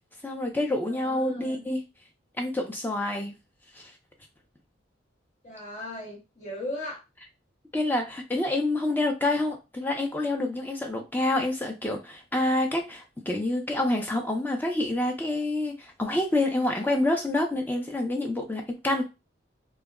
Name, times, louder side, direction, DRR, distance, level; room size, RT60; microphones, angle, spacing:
voice 1, 0.2-1.8 2.4-3.3 3.7-3.9 7.7-19.0, left 2 dB, 10° left, 2 dB, 0.4 m, -27 dB
voice 2, 0.9-1.6 5.4-7.0, left 1 dB, 40° left, -3 dB, 1.2 m, -37 dB
2.2 x 2.0 x 3.5 m, 0.26 s
head